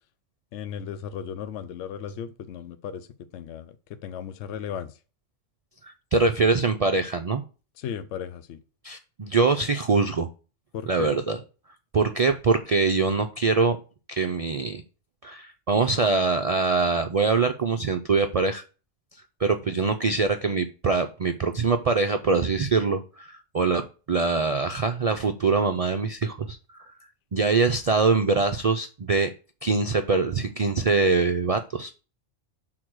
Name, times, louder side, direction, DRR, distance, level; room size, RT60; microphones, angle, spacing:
voice 1, 0.5-3.1 3.3-5.0 7.8-8.6 10.7-11.1, left 8 dB, 70° left, 0.9 m, -36 dB
voice 2, 5.8-7.4 8.8-10.3 10.9-11.4 11.9-13.8 14.1-14.8 15.2-18.6 19.4-26.8 27.3-29.3 29.6-31.9, right 4 dB, 50° right, 0.4 m, -23 dB
6.4 x 3.9 x 6.0 m
omnidirectional pair, 1.2 m